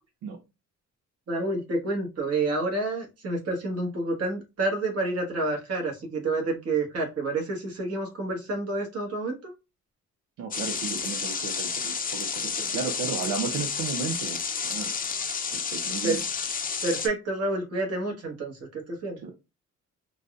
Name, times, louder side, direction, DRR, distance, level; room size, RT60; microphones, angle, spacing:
voice 1, 1.3-9.5 16.0-16.2 16.8-19.2, right 2 dB, 55° right, 1.5 m, -29 dB
voice 2, 10.4-14.9 15.5-16.2 19.2-19.3, right 6 dB, 85° right, 0.7 m, -34 dB
sound 1, 10.5-17.1, left 6 dB, 30° left, 0.6 m, -31 dB
3.9 x 2.5 x 2.4 m
cardioid pair, 90°, 30 cm